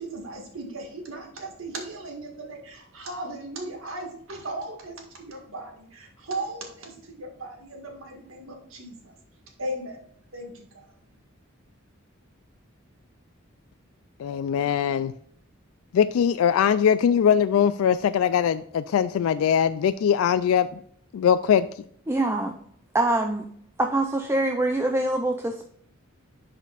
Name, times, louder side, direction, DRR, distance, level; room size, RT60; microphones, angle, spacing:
voice 1, 0.0-9.1 9.6-10.0 10.3-10.9, right 2 dB, 70° right, 2 dB, 1.9 m, -37 dB
voice 2, 14.2-15.1 15.9-20.8 21.1-21.7, left 8 dB, 85° left, 13 dB, 0.3 m, -21 dB
voice 3, 22.1-22.5 22.9-23.4 23.8-25.6, right 2 dB, 10° right, 4 dB, 0.5 m, -24 dB
10.5 x 5.1 x 2.5 m, 0.65 s
head